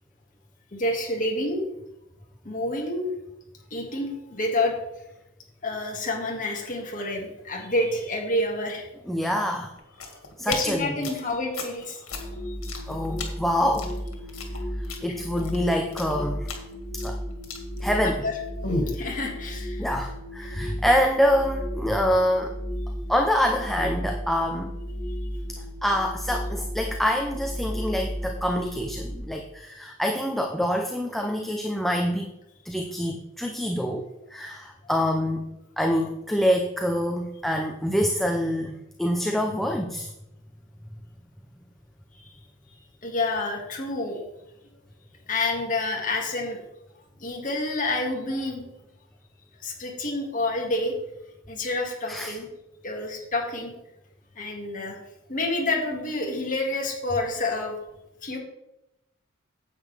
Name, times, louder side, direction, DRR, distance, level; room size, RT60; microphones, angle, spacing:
voice 1, 0.7-1.6 2.4-3.1 3.7-4.8 5.6-8.9 10.4-12.0 12.5-12.6 18.0-18.3 18.9-19.9 42.1-42.3 43.0-44.2 45.3-46.6 47.2-48.7 49.6-50.9 51.5-52.5 52.8-53.7 54.4-55.0 55.3-57.8 58.2-58.4, left 2 dB, 40° left, 0 dB, 2.0 m, -28 dB
voice 2, 9.0-9.7 10.4-11.1 12.9-13.9 14.8-16.5 16.9-17.2 17.8-18.2 19.8-22.5 23.1-24.7 25.5-32.3 32.6-34.0 34.3-40.1 52.1-52.4, equal, ahead, 3 dB, 0.6 m, -26 dB
sound 1, 9.8-18.3 18.6-19.0, left 3 dB, 90° left, 1.9 m, -35 dB
sound 2, 12.1-29.2, equal, 25° left, 1.4 m, -34 dB
9.6 x 8.3 x 3.4 m, 0.89 s
head